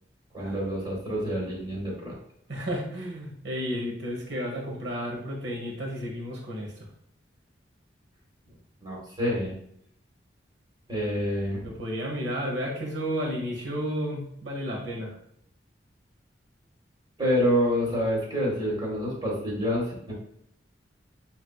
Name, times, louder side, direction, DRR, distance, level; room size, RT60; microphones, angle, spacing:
voice 1, 0.3-2.2 8.8-9.5 10.9-11.7 17.2-20.1, equal, 25° right, -4 dB, 1.7 m, -27 dB
voice 2, 2.5-6.9 11.6-15.2, equal, 70° right, -1 dB, 1.2 m, -32 dB
6.6 x 2.9 x 2.3 m, 0.70 s
head